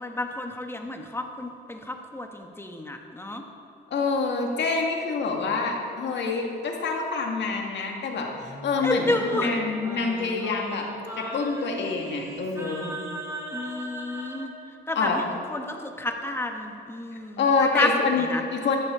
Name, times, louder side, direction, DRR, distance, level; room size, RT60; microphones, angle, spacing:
voice 1, 0.0-1.8 2.1-3.4 8.8-9.5 13.5-14.5 14.9-15.1 15.5-17.4 17.7-17.9 18.3-18.4, left 2 dB, 10° left, 3 dB, 1.2 m, -30 dB
voice 2, 3.9-10.9 11.2-13.0 14.9-15.2 17.4-18.8, left 4 dB, 65° left, 1 dB, 1.9 m, -26 dB
Singing, 8.4-14.5, right 1 dB, 15° right, 2.9 m, -38 dB
13.5 x 11.5 x 3.8 m, 2.6 s
cardioid pair, 90°, 20 cm